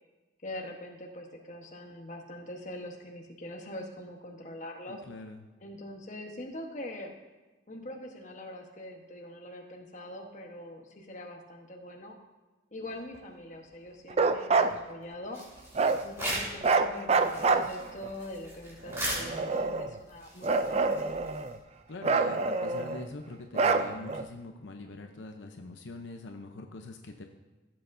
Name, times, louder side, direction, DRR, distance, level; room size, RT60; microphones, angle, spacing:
voice 1, 0.4-5.0 5.6-7.1 7.7-12.2 12.7-15.4 16.0-21.0, left 1 dB, 40° left, 1 dB, 1.1 m, -43 dB
voice 2, 4.9-5.5 21.9-27.2, left 2 dB, 75° left, 4 dB, 0.7 m, -43 dB
Bark, 14.1-14.8 15.8-16.0 16.6-18.1 18.9-20.0 20.4-21.6 22.0-23.1 23.5-24.2, right 4 dB, 30° right, 0.4 m, -27 dB
sound 1, 15.3-16.7 17.0-21.6, right 1 dB, 15° right, 2.5 m, -38 dB
15.5 x 7.7 x 2.6 m, 1.2 s
head